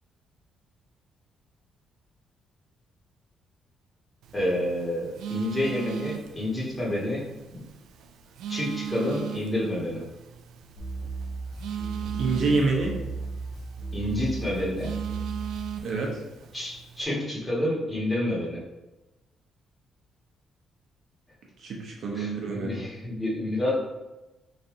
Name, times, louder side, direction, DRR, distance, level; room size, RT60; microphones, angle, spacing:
Telephone, 4.2-17.0, right 9 dB, 80° right, 0.3 m, -38 dB
voice 1, 4.3-7.2 7.5-7.6 8.5-10.0 13.9-14.9 16.5-18.6 22.1-23.8, left 1 dB, 20° left, -5 dB, 1.5 m, -29 dB
sound 1, 10.8-15.8, right 3 dB, 85° left, 1.1 m, -35 dB
voice 2, 12.1-12.9 15.8-16.1 21.6-22.8, right 3 dB, 65° right, -2 dB, 0.8 m, -26 dB
3.3 x 2.6 x 3.8 m, 1.0 s
cardioid pair, 90°, 0 cm